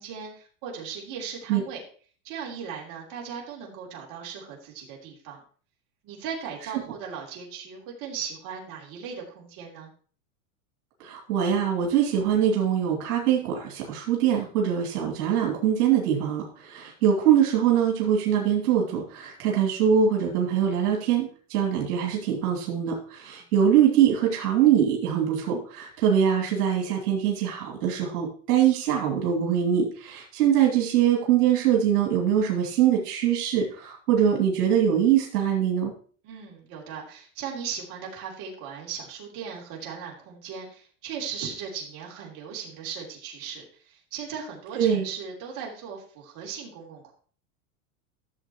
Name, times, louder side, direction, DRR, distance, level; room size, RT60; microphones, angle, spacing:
voice 1, 0.0-1.8 2.2-5.4 6.0-9.9 23.3-23.4 36.2-47.1, right 7 dB, 45° right, -2 dB, 3.4 m, -38 dB
voice 2, 11.0-35.9 44.8-45.1, right 9 dB, 80° right, -1 dB, 2.8 m, -23 dB
13.0 x 7.3 x 3.0 m, 0.43 s
supercardioid pair, 130°, 44 cm